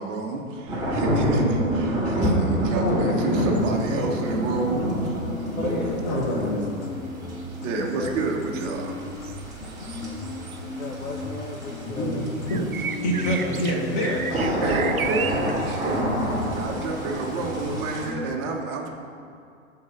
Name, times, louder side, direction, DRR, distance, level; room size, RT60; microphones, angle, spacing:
voice 1, 0.0-6.4 7.6-9.0 14.6-18.9, right 3 dB, 30° right, 0 dB, 1.6 m, -30 dB
sound 1, 0.6-3.0 3.2-9.4 9.6-15.7 16.0-18.3, left 2 dB, 55° left, 1.3 m, -36 dB
sound 2, 0.7-18.0, right 1 dB, 10° right, 2.2 m, -29 dB
voice 2, 2.8-4.0 6.1-6.7 11.8-12.2 12.5-14.9, equal, 35° left, -2 dB, 2.5 m, -27 dB
sound 3, 3.5-4.6 4.8-11.1 11.4-18.1, right 7 dB, 80° right, 0.6 m, -36 dB
voice 3, 5.6-6.6 7.7-8.2 10.7-12.3, left 3 dB, 80° left, 0 dB, 1.1 m, -34 dB
14.5 x 4.8 x 5.9 m, 2.4 s
figure-of-eight pair, 115°, 42 cm